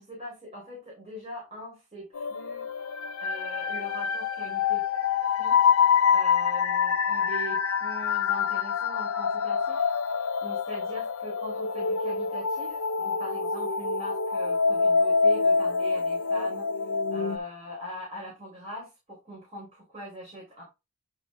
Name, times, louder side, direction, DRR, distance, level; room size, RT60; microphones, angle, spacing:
voice 1, 0.0-2.7 3.2-4.9 5.2-5.6 6.1-20.6, equal, 30° right, -4 dB, 3.7 m, -42 dB
sound 1, 2.1-17.4, left 6 dB, 70° left, 0.6 m, -26 dB
9.7 x 3.8 x 3.6 m, 0.25 s
head